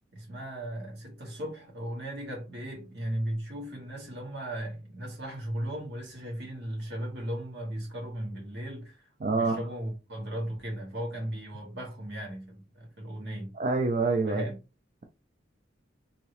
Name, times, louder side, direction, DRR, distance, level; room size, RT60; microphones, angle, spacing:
voice 1, 0.1-13.5 14.3-14.6, right 1 dB, 60° right, 1.5 m, -36 dB
voice 2, 9.2-9.6 13.6-14.4, right 3 dB, 40° right, 0.4 m, -26 dB
2.8 x 2.8 x 3.0 m
head